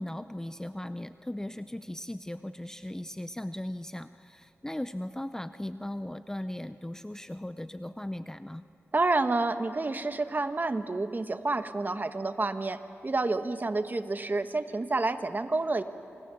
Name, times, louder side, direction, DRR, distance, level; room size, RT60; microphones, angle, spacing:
voice 1, 0.0-8.6, left 1 dB, 10° left, 12 dB, 0.6 m, -38 dB
voice 2, 8.9-15.8, right 3 dB, 40° right, 9 dB, 1.3 m, -29 dB
28.0 x 25.0 x 7.0 m, 3.0 s
cardioid pair, 65°, 5 cm